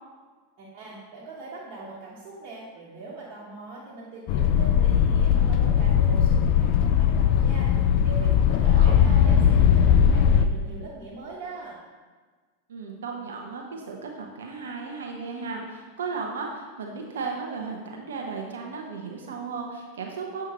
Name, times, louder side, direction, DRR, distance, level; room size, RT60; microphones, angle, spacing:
voice 1, 0.6-11.8, right 2 dB, 50° right, -8 dB, 1.2 m, -41 dB
sound 1, 4.3-10.5, left 8 dB, 50° left, 0.3 m, -19 dB
voice 2, 12.7-20.5, right 4 dB, 75° right, 1 dB, 0.7 m, -35 dB
7.3 x 4.6 x 2.9 m, 1.4 s
hypercardioid pair, 90°, 0 cm